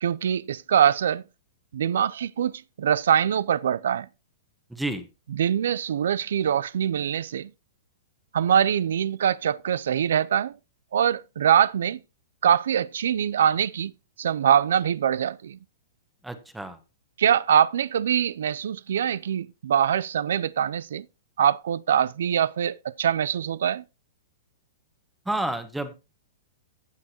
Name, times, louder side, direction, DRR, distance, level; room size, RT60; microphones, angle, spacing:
voice 1, 0.0-1.2 1.7-2.5 2.8-4.1 5.3-7.5 8.3-10.5 10.9-12.0 12.4-13.9 14.2-15.6 17.2-21.1 21.4-23.8, right 9 dB, 75° right, 0.4 m, -23 dB
voice 2, 4.7-5.1 16.2-16.8 25.3-25.9, right 1 dB, 5° right, 1.1 m, -30 dB
15.5 x 6.3 x 2.8 m
hypercardioid pair, 130°, 0 cm